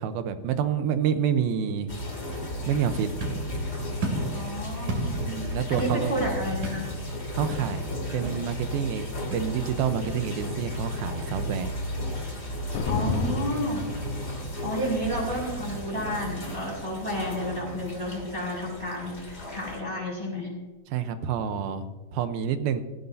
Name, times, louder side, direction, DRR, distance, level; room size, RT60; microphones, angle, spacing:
voice 1, 0.0-1.9 2.7-3.5 5.1-6.4 7.3-7.8 8.1-9.0 9.3-11.7 20.9-21.9 22.1-22.8, right 8 dB, 80° right, 9 dB, 2.6 m, -28 dB
sound 1, 1.9-19.8, left 1 dB, 20° left, 2.3 m, -34 dB
sound 2, 2.8-16.4, right 2 dB, 55° right, 3.9 m, -39 dB
voice 2, 4.3-5.3 5.7-6.9 12.8-13.9 14.6-20.5, equal, 15° right, -4 dB, 5.7 m, -31 dB
sound 3, 12.7-14.7, left 4 dB, 70° left, 1.8 m, -30 dB
18.5 x 16.0 x 2.7 m, 1.3 s
omnidirectional pair, 4.5 m